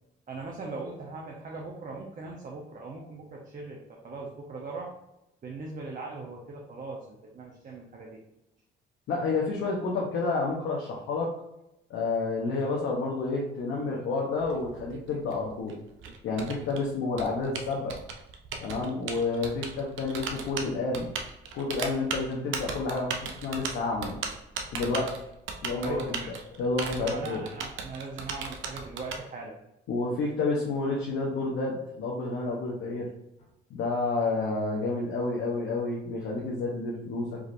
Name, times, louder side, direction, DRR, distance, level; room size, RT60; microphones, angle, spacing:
voice 1, 0.3-4.9 5.4-8.2 25.8-26.3 26.9-29.6, right 3 dB, 45° right, -1 dB, 0.8 m, -39 dB
voice 2, 9.1-11.3 11.9-15.7 16.2-18.0 18.6-21.1 21.5-24.2 24.7-25.1 25.6-27.4 29.9-33.1 33.7-37.4, left 3 dB, 85° left, -3 dB, 0.8 m, -30 dB
Typing, 14.3-29.2, right 5 dB, 80° right, 0.6 m, -37 dB
4.8 x 3.1 x 2.6 m, 0.87 s
cardioid pair, 90°, 20 cm